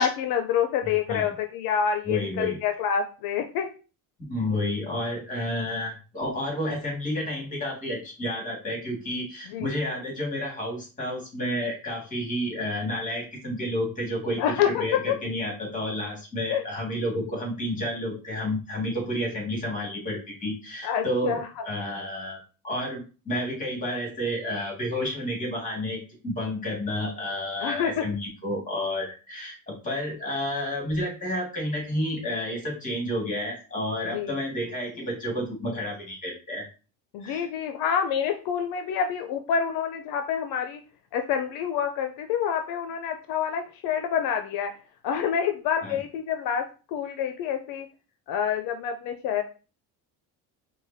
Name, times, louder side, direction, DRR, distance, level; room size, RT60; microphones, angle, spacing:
voice 1, 0.0-3.7 9.5-9.7 14.4-15.2 16.5-16.6 20.8-21.5 27.6-28.0 34.1-34.7 37.1-40.8 41.1-44.7 45.0-47.9 48.3-49.4, left 8 dB, 75° left, 7 dB, 0.5 m, -27 dB
voice 2, 2.1-2.6 4.3-22.4 22.6-36.6 37.2-37.5 45.8-46.0, left 1 dB, 20° left, -2 dB, 1.9 m, -30 dB
4.8 x 2.2 x 2.6 m, 0.34 s
cardioid pair, 140°, 35 cm